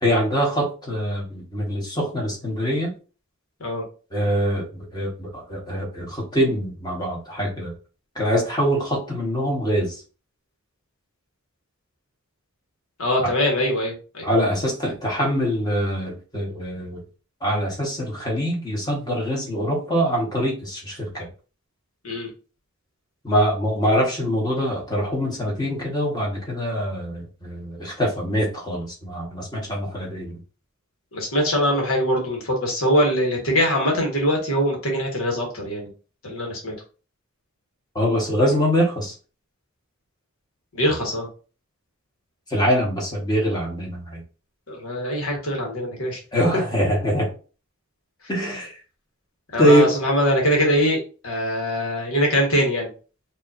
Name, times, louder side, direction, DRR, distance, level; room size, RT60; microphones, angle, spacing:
voice 1, 0.0-2.9 4.1-7.7 8.1-10.0 14.2-17.0 17.4-21.3 23.2-30.4 37.9-39.1 42.5-44.2 46.3-47.3 48.3-48.8 49.6-49.9, equal, 20° left, -2 dB, 1.6 m, -23 dB
voice 2, 13.0-14.2 22.0-22.3 31.1-35.9 36.2-36.7 40.7-41.3 44.7-46.2 46.5-46.6 49.5-52.9, equal, 75° left, 1 dB, 1.6 m, -22 dB
5.1 x 2.8 x 2.7 m, 0.35 s
head